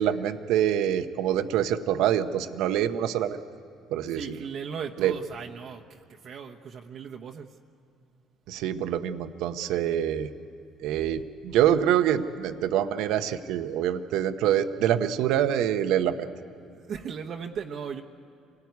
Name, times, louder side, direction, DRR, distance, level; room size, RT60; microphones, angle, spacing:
voice 1, 0.0-3.4 3.9-4.4 5.0-5.2 8.5-10.3 10.8-16.3, right 10 dB, 80° right, 9 dB, 0.9 m, -25 dB
voice 2, 4.1-7.5 16.7-18.0, right 6 dB, 55° right, 2 dB, 1.1 m, -37 dB
25.5 x 18.0 x 9.5 m, 2.6 s
supercardioid pair, 90°, 0 cm